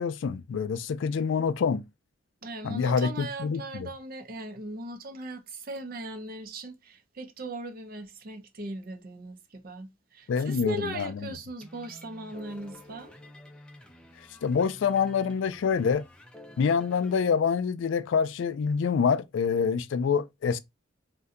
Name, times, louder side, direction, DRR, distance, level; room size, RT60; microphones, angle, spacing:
voice 1, 0.0-1.8 2.6-3.9 10.3-11.3 14.4-16.0 16.6-20.6, left 6 dB, 70° left, 0.3 m, -26 dB
voice 2, 2.4-13.1, right 1 dB, 45° right, 0.5 m, -38 dB
sound 1, 11.6-17.2, left 1 dB, 5° left, 0.5 m, -50 dB
2.6 x 2.2 x 3.6 m
head